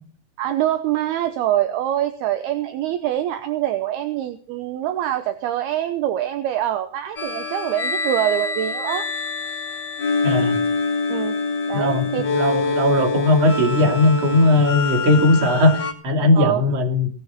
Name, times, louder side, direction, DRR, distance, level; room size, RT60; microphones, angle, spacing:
voice 1, 0.4-9.1 11.1-11.4 11.7-12.3 16.3-16.6, right 12 dB, 75° right, 9 dB, 2.5 m, -24 dB
sound 1, 7.2-15.9, left 4 dB, 80° left, 0.9 m, -25 dB
voice 2, 10.2-10.6 11.7-17.1, left 1 dB, 40° right, 5 dB, 3.2 m, -18 dB
18.5 x 14.0 x 4.3 m, 0.42 s
omnidirectional pair, 5.4 m